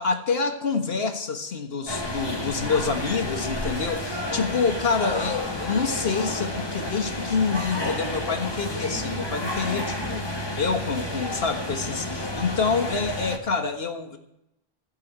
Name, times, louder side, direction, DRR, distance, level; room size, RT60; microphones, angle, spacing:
voice 1, 0.0-10.3 10.6-14.2, left 5 dB, 70° left, 6 dB, 1.7 m, -27 dB
sound 1, 1.9-13.4, left 1 dB, 25° left, 1.7 m, -31 dB
15.0 x 5.6 x 10.0 m, 0.83 s
omnidirectional pair, 1.0 m